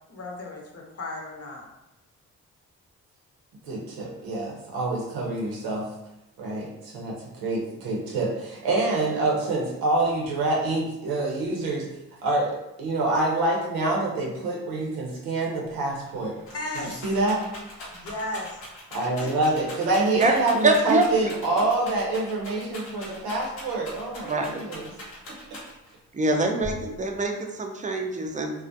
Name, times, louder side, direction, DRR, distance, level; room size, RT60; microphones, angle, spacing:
voice 1, 0.1-1.6 16.1-17.1 17.9-18.6 19.2-19.3, left 2 dB, 40° left, -1 dB, 0.7 m, -35 dB
voice 2, 3.7-5.8 6.4-7.1 7.4-11.8 12.2-12.5 12.8-16.4 17.0-17.4 18.9-24.9, right 2 dB, 90° right, -3 dB, 0.7 m, -26 dB
Rattle, 16.1-26.0 26.6-27.2, left 1 dB, 85° left, 0.9 m, -41 dB
voice 3, 20.6-21.1 24.2-24.6 26.1-28.5, right 2 dB, 20° right, 3 dB, 0.4 m, -24 dB
2.3 x 2.1 x 2.6 m, 0.92 s
supercardioid pair, 50°, 36 cm